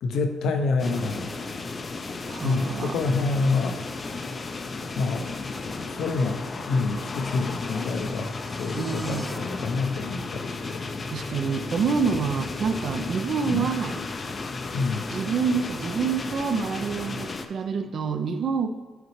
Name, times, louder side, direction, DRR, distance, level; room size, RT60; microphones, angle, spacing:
voice 1, 0.0-1.3 2.4-3.8 5.0-5.3 5.8-6.4 6.7-8.3 8.6-10.8 13.4-13.7 14.7-15.1, left 3 dB, 75° left, 6 dB, 0.7 m, -27 dB
sound 1, 0.8-17.5, left 3 dB, 35° left, 0.5 m, -34 dB
voice 2, 2.3-3.0 8.7-9.3 11.1-14.0 15.1-18.7, right 6 dB, 55° right, 7 dB, 0.4 m, -27 dB
sound 2, 7.0-9.4, equal, ahead, 0.7 m, -45 dB
7.9 x 4.1 x 3.2 m, 1.4 s
cardioid pair, 90°, 0 cm